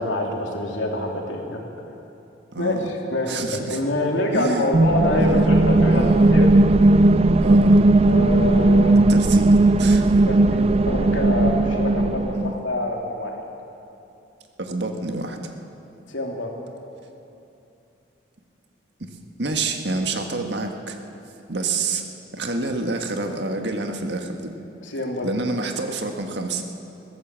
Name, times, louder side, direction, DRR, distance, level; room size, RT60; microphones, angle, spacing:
voice 1, 0.0-1.6 2.6-6.5 8.1-9.0 10.2-13.4 16.1-16.6 24.8-25.3, left 1 dB, 85° left, 0 dB, 3.1 m, -26 dB
voice 2, 2.5-2.9 3.3-3.8 4.3-4.7 5.2-5.5 5.9-6.3 7.4-7.8 9.1-10.1 12.3-12.5 14.6-15.5 19.0-19.1 19.4-21.0 21.5-22.0 22.3-24.5 25.2-26.6, right 3 dB, 65° right, 4 dB, 1.7 m, -28 dB
sound 1, 4.7-12.5, right 2 dB, 30° right, 0.4 m, -16 dB
21.0 x 16.0 x 7.6 m, 2.8 s
head